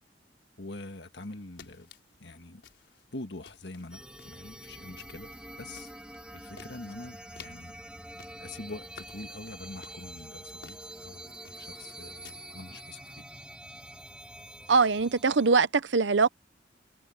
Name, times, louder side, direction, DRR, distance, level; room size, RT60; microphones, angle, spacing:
voice 1, 0.6-1.9 2.2-2.6 3.1-5.3 5.6-5.9 6.3-7.7 8.4-13.3, left 2 dB, 65° left, 1.8 m, -44 dB
sound 1, 1.2-12.3, left 6 dB, 90° left, 4.5 m, -56 dB
sound 2, 3.9-15.5, right 1 dB, 5° right, 2.4 m, -46 dB
voice 2, 14.7-16.3, right 4 dB, 90° right, 0.8 m, -22 dB
head